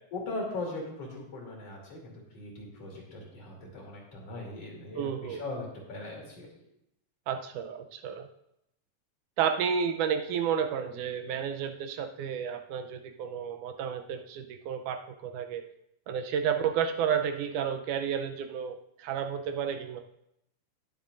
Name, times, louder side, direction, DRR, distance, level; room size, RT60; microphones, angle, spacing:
voice 1, 0.1-6.5, left 2 dB, 50° left, -1 dB, 3.8 m, -39 dB
voice 2, 5.0-5.4 7.3-8.3 9.4-15.7 16.1-20.0, right 7 dB, 80° right, 6 dB, 2.1 m, -31 dB
19.5 x 7.2 x 2.6 m, 0.79 s
omnidirectional pair, 3.7 m